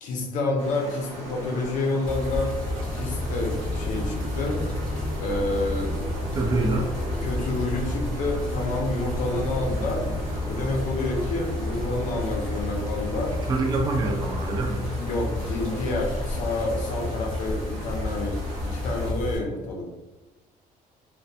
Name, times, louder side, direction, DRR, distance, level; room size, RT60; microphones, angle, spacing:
voice 1, 0.0-2.5 2.9-4.6 5.2-6.0 7.2-10.1 10.5-13.3 15.0-18.4 18.6-19.9, left 2 dB, 60° left, 0 dB, 0.6 m, -28 dB
above chocolate falls, 0.6-19.1, right 1 dB, 45° right, 0.8 m, -39 dB
sound 1, 2.1-19.4, left 2 dB, 10° left, 0.7 m, -32 dB
sound 2, 2.3-16.9, equal, 85° right, 0.5 m, -36 dB
voice 2, 6.3-6.9 13.5-14.9, right 2 dB, 25° right, 3 dB, 0.3 m, -25 dB
2.2 x 2.2 x 2.6 m, 1.1 s
cardioid pair, 160°, 15 cm